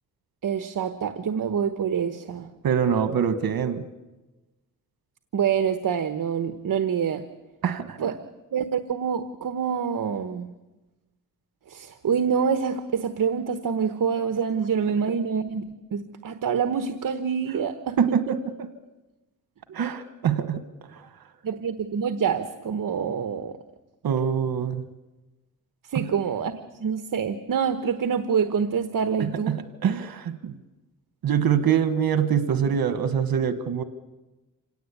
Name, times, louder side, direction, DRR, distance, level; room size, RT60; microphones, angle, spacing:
voice 1, 0.4-2.5 5.3-7.2 8.0-8.1 8.5-10.5 11.7-18.0 21.4-23.6 25.9-26.5 26.8-29.6, right 7 dB, 60° right, 10 dB, 1.2 m, -26 dB
voice 2, 2.6-3.8 7.6-8.1 18.0-18.7 19.7-20.6 20.9-21.1 24.0-24.8 25.9-26.1 29.2-30.6 31.2-33.8, right 8 dB, 80° right, 10 dB, 1.4 m, -24 dB
26.5 x 18.0 x 8.5 m, 1.1 s
wide cardioid pair, 110°, 35 cm